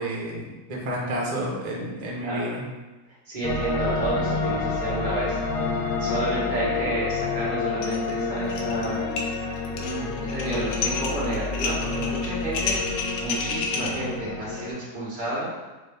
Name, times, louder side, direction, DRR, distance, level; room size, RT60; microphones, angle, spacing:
voice 1, 0.0-2.6, right 1 dB, 75° right, -2 dB, 0.3 m, -30 dB
voice 2, 2.2-2.5 3.1-5.7 6.0-9.1 9.7-12.9 13.2-15.5, right 2 dB, 30° right, -8 dB, 1.2 m, -31 dB
sound 1, 3.4-14.7, left 4 dB, 70° left, 1.1 m, -29 dB
sound 2, 7.8-8.1 8.4-8.9 9.2-13.9, left 4 dB, 90° left, 1.4 m, -30 dB
4.9 x 2.6 x 3.4 m, 1.2 s
omnidirectional pair, 2.0 m